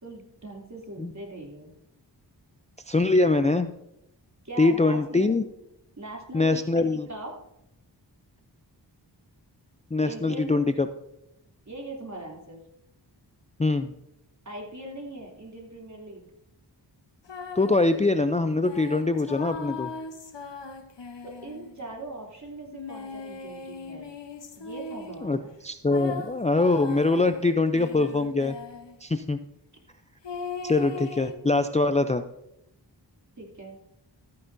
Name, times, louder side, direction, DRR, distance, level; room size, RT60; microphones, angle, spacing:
voice 1, 0.0-1.7 4.4-5.4 6.0-7.3 10.0-10.6 11.6-12.6 14.4-16.3 21.2-24.1 24.6-25.5 33.4-33.8, right 2 dB, 40° right, -1 dB, 3.0 m, -41 dB
voice 2, 2.9-3.7 4.6-5.4 6.3-7.1 9.9-10.9 13.6-13.9 17.5-19.9 25.2-28.6 29.0-29.4 30.6-32.2, left 3 dB, 15° left, 8 dB, 0.4 m, -23 dB
sound 1, 17.3-17.9 18.6-21.9 22.7-25.3 25.9-29.0 30.2-31.3, left 4 dB, 75° left, 1.1 m, -39 dB
13.5 x 9.5 x 2.6 m, 0.85 s
wide cardioid pair, 65°, 43 cm